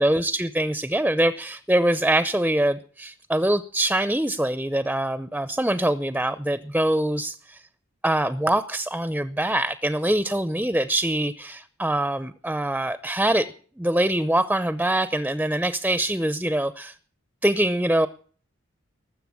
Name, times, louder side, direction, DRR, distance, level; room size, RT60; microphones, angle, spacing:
voice 1, 0.0-7.6 8.0-13.5 13.8-16.9 17.4-18.1, right 1 dB, 5° right, 13 dB, 0.6 m, -24 dB
19.0 x 7.8 x 8.5 m, 0.43 s
head